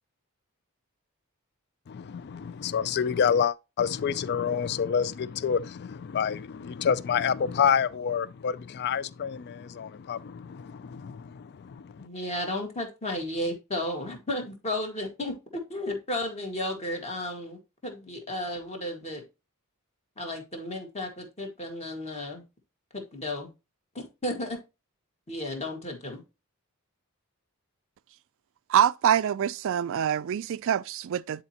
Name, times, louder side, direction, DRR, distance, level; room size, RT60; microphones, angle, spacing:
voice 1, 1.9-12.1, left 7 dB, 50° left, 0.4 m, -28 dB
voice 2, 12.0-15.4 15.7-19.2 20.2-22.4 22.9-23.5 23.9-24.6 25.3-26.2, left 1 dB, 30° left, 1.8 m, -33 dB
voice 3, 28.7-31.4, right 9 dB, 60° right, 0.3 m, -25 dB
9.7 x 4.2 x 2.8 m
head